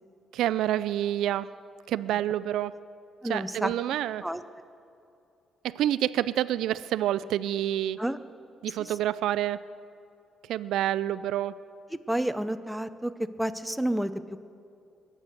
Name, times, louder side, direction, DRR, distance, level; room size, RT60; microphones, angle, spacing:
voice 1, 0.3-1.5 1.9-2.7 3.3-4.2 5.6-8.0 8.6-9.6 10.5-11.6, right 12 dB, 85° right, 16 dB, 0.3 m, -28 dB
voice 2, 3.2-3.7 4.2-4.4 8.0-8.2 8.7-8.9 11.9-13.1 13.4-14.1, right 1 dB, 5° right, 10 dB, 0.7 m, -30 dB
22.5 x 8.5 x 6.5 m, 2.6 s
cardioid pair, 90°, 0 cm